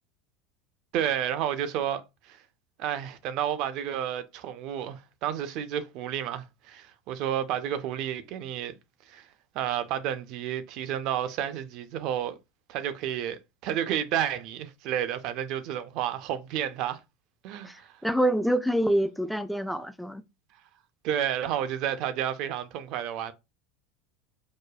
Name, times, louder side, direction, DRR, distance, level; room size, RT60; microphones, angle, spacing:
voice 1, 0.9-2.4 2.8-8.8 9.1-9.3 9.5-12.4 12.7-17.0 17.4-18.0 21.0-23.3, right 10 dB, 55° right, 0.5 m, -31 dB
voice 2, 17.6-20.2, right 1 dB, ahead, 0.4 m, -26 dB
4.8 x 2.2 x 2.3 m
hypercardioid pair, 80°, 0 cm